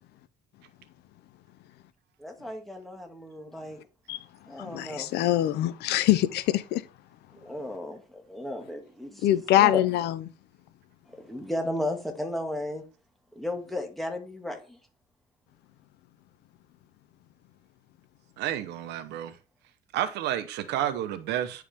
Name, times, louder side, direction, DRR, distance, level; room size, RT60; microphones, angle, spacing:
voice 1, 2.2-3.8 4.5-5.1 7.3-9.3 9.6-9.8 11.1-12.8 13.4-14.8, left 1 dB, ahead, 1.9 m, -34 dB
voice 2, 4.6-6.8 9.2-10.2, left 13 dB, 75° left, 0.6 m, -24 dB
voice 3, 18.4-19.4 19.9-21.6, right 11 dB, 85° right, 0.9 m, -30 dB
10.0 x 4.8 x 3.6 m
cardioid pair, 110°, 17 cm